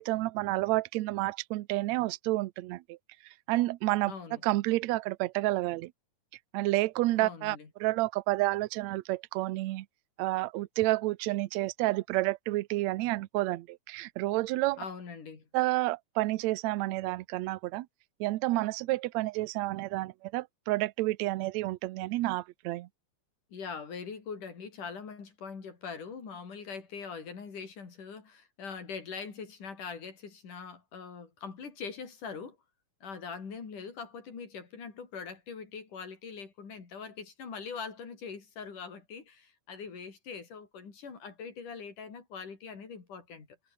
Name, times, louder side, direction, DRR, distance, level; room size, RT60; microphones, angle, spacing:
voice 1, 0.0-3.0 3.5-4.1 4.4-5.9 6.5-9.9 10.2-14.8 15.5-17.9 18.2-22.9, right 18 dB, 70° right, 1.8 m, -30 dB
voice 2, 4.0-4.4 7.2-7.7 14.8-15.4 23.5-32.6 33.0-43.5, left 5 dB, 75° left, 5.9 m, -42 dB
omnidirectional pair, 3.6 m